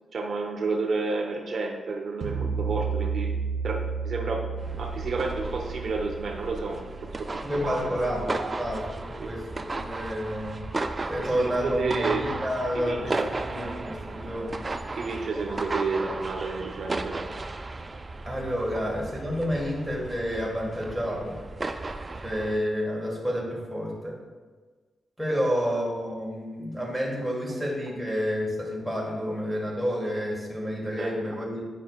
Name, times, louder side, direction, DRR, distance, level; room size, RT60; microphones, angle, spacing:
voice 1, 0.1-3.3 3.6-4.5 4.8-6.9 7.3-8.6 9.2-9.3 11.2-12.2 12.7-13.3 15.0-17.2 25.3-25.4 31.0-31.1, right 3 dB, 55° right, 1 dB, 0.7 m, -31 dB
sound 1, 2.2-7.5, right 6 dB, 70° right, 1.9 m, -32 dB
sound 2, 4.6-22.6, right 2 dB, 25° right, 0.3 m, -35 dB
voice 2, 7.4-10.6 11.0-14.6 18.2-21.4 22.2-24.2 25.2-31.7, equal, ahead, -4 dB, 1.6 m, -30 dB
9.9 x 5.3 x 2.3 m, 1.4 s
wide cardioid pair, 140°, 0 cm